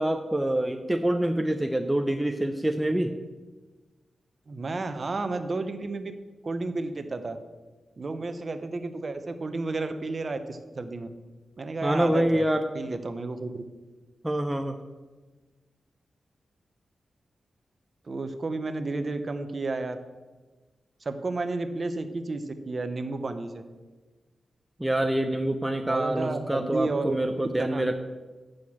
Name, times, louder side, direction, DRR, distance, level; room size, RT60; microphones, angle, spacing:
voice 1, 0.0-3.1 11.8-12.7 14.2-14.8 24.8-28.0, right 1 dB, 5° right, 4 dB, 0.5 m, -26 dB
voice 2, 4.5-6.1 6.4-7.4 8.0-11.1 11.6-12.5 12.7-13.7 18.1-20.0 21.0-23.6 25.8-27.2 27.6-27.8, right 3 dB, 35° right, 9 dB, 0.7 m, -32 dB
8.1 x 6.4 x 7.2 m, 1.3 s
wide cardioid pair, 160°, 0 cm